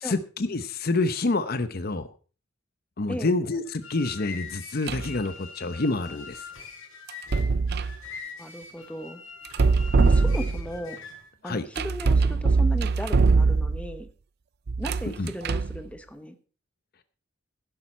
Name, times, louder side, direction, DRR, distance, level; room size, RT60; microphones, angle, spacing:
voice 1, 0.0-2.1 3.0-6.4 11.4-11.7 15.1-15.3, left 3 dB, 50° left, 11 dB, 0.8 m, -27 dB
sound 1, 3.6-11.3, left 5 dB, 85° left, 5.7 m, -43 dB
sound 2, 4.9-5.2 7.1-8.0 9.4-10.8 11.8-13.9 14.7-15.8, right 4 dB, 50° right, 0.5 m, -22 dB
voice 2, 8.4-9.2 10.0-11.0 11.4-14.1 14.8-16.4, equal, 5° left, 9 dB, 1.0 m, -36 dB
12.0 x 10.5 x 4.3 m, 0.37 s
head